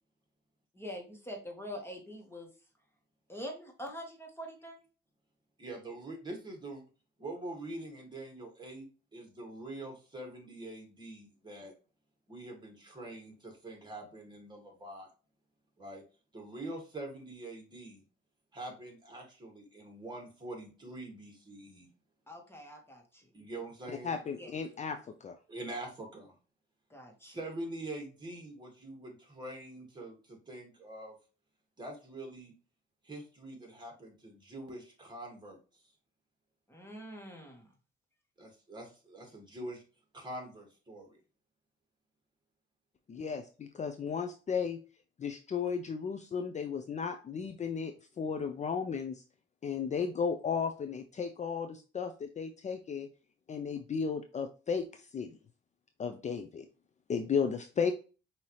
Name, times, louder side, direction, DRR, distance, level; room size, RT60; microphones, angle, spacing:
voice 1, 0.7-2.5 3.3-4.8 22.3-23.3 24.4-24.5 26.9-27.4 36.7-37.7, equal, 10° left, 1 dB, 1.6 m, -44 dB
voice 2, 5.6-6.8 7.2-8.9 9.1-11.7 12.3-15.1 15.8-16.0 16.3-18.0 18.5-21.9 23.3-24.2 25.5-26.4 27.2-31.2 31.8-32.5 33.0-35.8 38.4-39.8 40.1-41.2, right 1 dB, 20° right, 1 dB, 2.1 m, -44 dB
voice 3, 24.0-25.4 43.1-44.8 45.2-49.2 49.6-53.1 53.5-55.3 56.0-56.7 57.1-57.9, left 6 dB, 35° left, 7 dB, 0.5 m, -34 dB
5.4 x 2.8 x 3.1 m, 0.34 s
cardioid pair, 90°, 20 cm